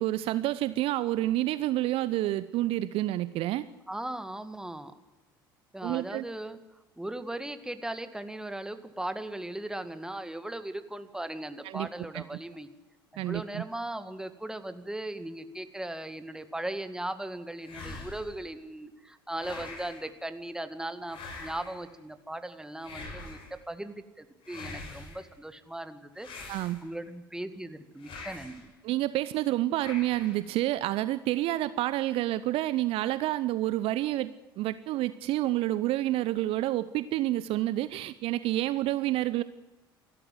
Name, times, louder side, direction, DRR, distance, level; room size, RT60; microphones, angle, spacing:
voice 1, 0.0-3.6 5.8-6.2 11.6-11.9 12.1-12.2 13.2-13.6 26.5-26.8 28.8-39.4, right 15 dB, 50° right, 15 dB, 0.7 m, -29 dB
voice 2, 3.9-4.9 5.7-6.6 7.0-12.7 13.1-23.4 23.7-26.3 26.6-28.7, right 1 dB, 5° right, 10 dB, 2.0 m, -38 dB
sound 1, 17.6-18.4 19.3-20.1 21.1-21.9 22.8-23.6 24.4-25.3 26.2-27.1 28.0-28.7 29.8-30.5, left 3 dB, 45° left, 6.5 m, -44 dB
28.5 x 13.0 x 7.8 m, 1.0 s
figure-of-eight pair, 65°, 12 cm